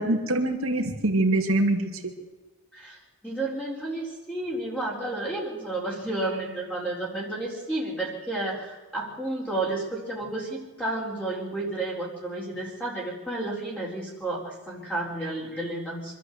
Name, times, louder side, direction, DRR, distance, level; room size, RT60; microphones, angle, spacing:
voice 1, 0.0-2.1, right 2 dB, 65° right, 2 dB, 2.5 m, -24 dB
voice 2, 2.7-16.1, right 2 dB, 5° left, -4 dB, 4.1 m, -31 dB
25.5 x 12.5 x 8.2 m, 1.3 s
head